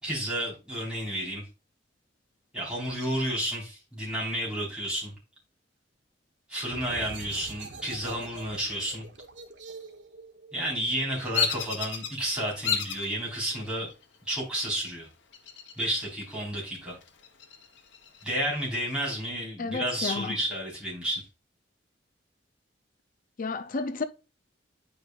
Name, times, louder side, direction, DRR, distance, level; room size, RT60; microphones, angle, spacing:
voice 1, 0.0-1.4 2.5-5.1 6.5-9.1 10.5-13.9 14.3-15.1 15.8-17.0 18.2-21.2, right 1 dB, 5° right, 4.3 m, -31 dB
sound 1, 6.6-12.0, right 3 dB, 75° right, 1.2 m, -45 dB
Bird vocalization bird call bird song, 11.3-12.1 12.6-13.1 13.6-14.2 15.3-16.1 16.4-16.5 17.0-18.4, left 6 dB, 80° left, 1.1 m, -31 dB
voice 2, 19.6-20.4 23.4-24.0, left 4 dB, 45° left, 0.5 m, -31 dB
9.3 x 5.3 x 2.4 m
head